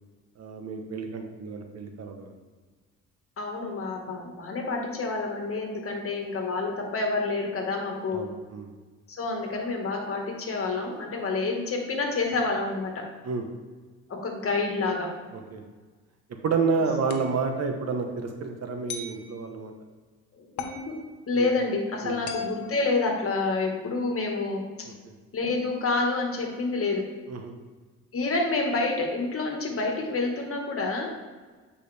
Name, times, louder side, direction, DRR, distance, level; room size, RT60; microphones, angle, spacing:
voice 1, 0.4-2.4 8.1-8.7 13.2-13.5 15.3-15.6 16.4-19.7 21.3-21.5 22.0-22.2 24.8-25.1 27.3-27.5, right 4 dB, 55° right, 4 dB, 1.1 m, -30 dB
voice 2, 3.4-8.3 9.1-13.0 14.1-15.1 20.4-21.0 21.3-24.6 25.3-27.1 28.1-31.1, left 3 dB, 50° left, 1 dB, 1.6 m, -28 dB
sound 1, 17.1-17.4 18.9-19.2 20.6-20.9 22.3-23.7, left 5 dB, 75° left, 0.9 m, -37 dB
8.5 x 5.0 x 3.4 m, 1.4 s
cardioid pair, 90°, 30 cm